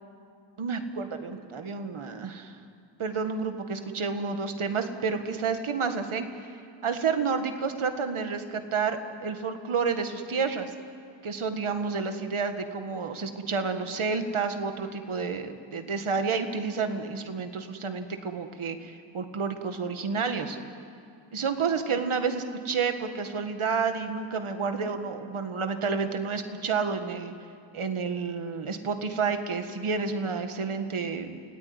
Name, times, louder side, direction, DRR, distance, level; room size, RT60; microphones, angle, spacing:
voice 1, 0.6-2.6 3.0-6.5 6.8-10.7 11.2-20.6 21.3-27.3 27.7-31.4, right 5 dB, 85° right, 7 dB, 1.8 m, -30 dB
29.5 x 17.5 x 9.7 m, 2.3 s
wide cardioid pair, 75°, 48 cm